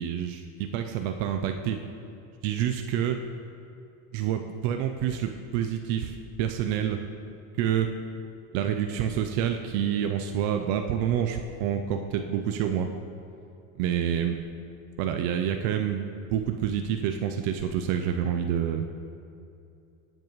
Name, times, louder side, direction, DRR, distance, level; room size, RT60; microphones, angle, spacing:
voice 1, 0.0-1.8 2.4-3.2 4.1-7.0 7.6-7.9 8.5-12.9 13.8-14.4 15.0-18.8, right 9 dB, 80° right, 6 dB, 0.6 m, -28 dB
12.0 x 7.5 x 3.1 m, 2.6 s
cardioid pair, 130°, 34 cm